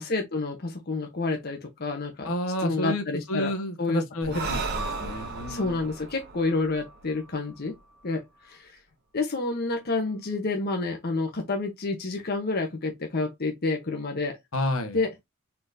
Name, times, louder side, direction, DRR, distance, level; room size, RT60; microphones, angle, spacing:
voice 1, 0.0-2.3 2.6-3.5 3.8-4.6 5.5-7.8 8.0-8.7 9.1-14.4 14.9-15.1, left 3 dB, 45° left, 0.9 m, -29 dB
voice 2, 2.2-5.8 14.5-15.0, left 1 dB, 70° left, 1.2 m, -30 dB
Breathing, 4.2-7.8, right 4 dB, 45° right, 1.2 m, -35 dB
sound 1, 4.7-8.6 9.4-10.1, equal, 30° right, 2.2 m, -47 dB
4.3 x 3.9 x 2.6 m
head